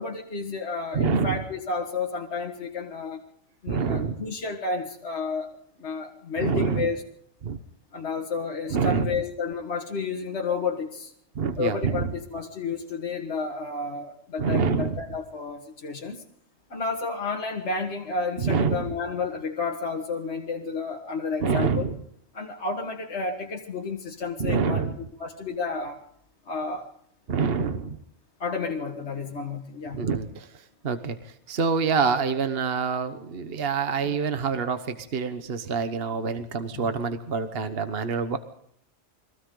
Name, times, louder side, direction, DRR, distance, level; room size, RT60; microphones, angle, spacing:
voice 1, 0.0-3.2 3.6-5.5 5.8-7.0 7.9-11.1 11.6-16.2 16.7-21.9 22.3-24.9 25.2-26.0 26.5-26.9 28.4-30.0 34.0-34.2 36.7-36.9, left 4 dB, 60° left, 0 dB, 2.0 m, -31 dB
voice 2, 0.9-1.4 3.7-4.1 6.4-6.9 7.4-7.6 8.7-9.1 11.3-12.1 14.4-14.9 18.4-18.9 21.4-21.9 24.4-25.0 27.3-28.0 29.9-30.5 30.8-38.4, right 5 dB, 50° right, 8 dB, 1.3 m, -26 dB
29.5 x 22.5 x 3.9 m, 0.70 s
omnidirectional pair, 1.3 m